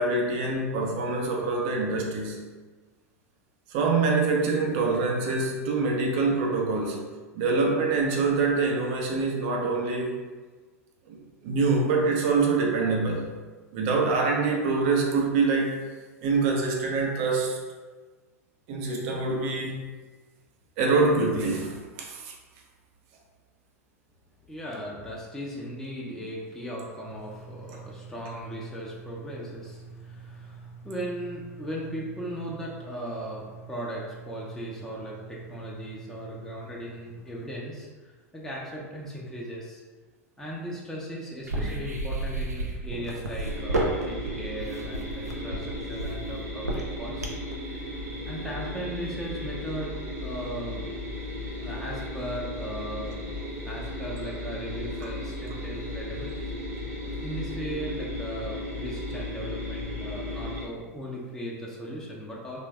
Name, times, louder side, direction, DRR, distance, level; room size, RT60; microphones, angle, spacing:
voice 1, 0.0-2.4 3.7-7.1 7.3-10.2 11.1-13.3 13.7-15.8 16.2-17.6 18.7-19.9 20.8-22.3, right 3 dB, 45° right, 0 dB, 0.6 m, -25 dB
voice 2, 24.4-39.8 40.4-47.3 47.7-47.8 48.3-49.9 50.2-50.9 51.6-53.2 53.6-56.5 56.8-62.6, right 1 dB, 5° left, -4 dB, 0.6 m, -37 dB
sound 1, 27.0-37.6, right 5 dB, 60° left, 0.5 m, -46 dB
sound 2, 41.5-47.5, right 2 dB, 85° right, 0.5 m, -31 dB
sound 3, 43.4-60.6, left 1 dB, 30° right, 1.0 m, -35 dB
3.3 x 2.3 x 3.1 m, 1.4 s
figure-of-eight pair, 90°, 8 cm